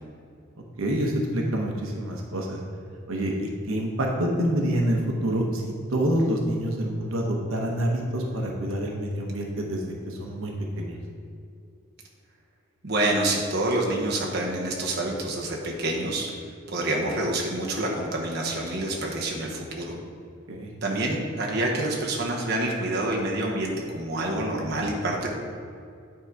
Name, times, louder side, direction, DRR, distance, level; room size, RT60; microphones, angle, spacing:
voice 1, 0.8-2.6 3.1-5.6 5.9-11.0 20.5-20.7, right 1 dB, 90° right, 0 dB, 1.0 m, -27 dB
voice 2, 12.8-16.3 16.7-20.0 20.8-25.3, right 1 dB, 55° right, -2 dB, 1.0 m, -27 dB
9.8 x 3.8 x 4.7 m, 2.3 s
head